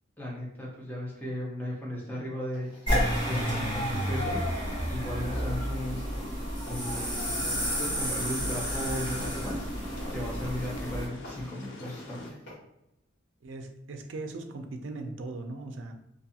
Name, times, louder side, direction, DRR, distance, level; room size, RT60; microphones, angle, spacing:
voice 1, 0.2-3.0 3.3-4.5 4.9-6.0 6.7-12.4, left 1 dB, 10° left, -4 dB, 0.6 m, -36 dB
sound 1, 2.5-12.5, left 1 dB, 60° left, 1.4 m, -47 dB
sound 2, 2.9-11.1, equal, 25° left, 1.2 m, -31 dB
sound 3, 7.2-12.3, left 2 dB, 75° left, 0.5 m, -45 dB
voice 2, 13.4-15.9, right 2 dB, 70° right, 5 dB, 0.4 m, -39 dB
2.5 x 2.4 x 2.7 m, 0.85 s
head